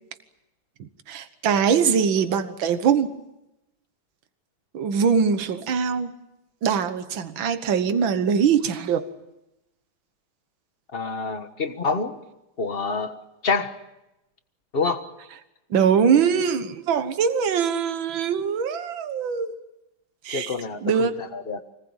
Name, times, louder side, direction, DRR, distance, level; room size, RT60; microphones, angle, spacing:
voice 1, 0.8-3.1 4.7-6.1 6.6-9.0 15.7-19.6 20.3-20.5 20.8-21.1, right 7 dB, 75° right, 10 dB, 2.0 m, -22 dB
voice 2, 10.9-12.2 12.6-13.1 13.4-13.7 14.7-15.0 20.3-21.6, left 4 dB, 30° left, 9 dB, 1.5 m, -27 dB
25.0 x 19.0 x 8.9 m, 0.94 s
omnidirectional pair, 2.2 m